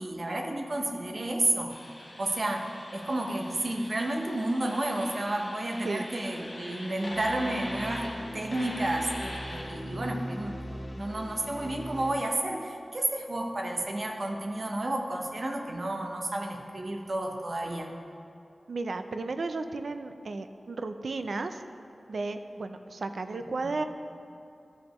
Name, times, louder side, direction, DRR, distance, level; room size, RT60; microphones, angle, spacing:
voice 1, 0.0-1.7 2.2-8.1 8.3-10.6 11.0-17.9, right 1 dB, 50° right, 2 dB, 0.8 m, -31 dB
sound 1, 1.7-12.1, equal, 40° left, 1.7 m, -41 dB
voice 2, 18.7-21.6 22.1-23.8, right 3 dB, 75° right, 8 dB, 0.4 m, -34 dB
12.5 x 5.2 x 3.0 m, 2.7 s
wide cardioid pair, 100°, 0 cm